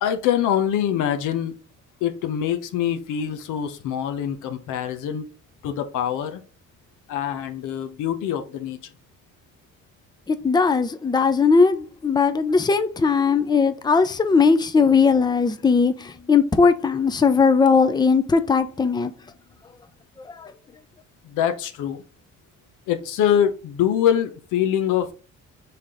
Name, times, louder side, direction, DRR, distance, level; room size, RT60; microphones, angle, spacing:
voice 1, 0.0-1.5 2.0-5.2 5.6-6.4 7.1-8.8 21.2-22.0 22.9-25.1, left 9 dB, 90° left, 0.8 m, -24 dB
voice 2, 10.3-19.1 20.3-20.5, left 5 dB, 15° left, 0.5 m, -19 dB
4.3 x 3.4 x 3.6 m
cardioid pair, 90°, 30 cm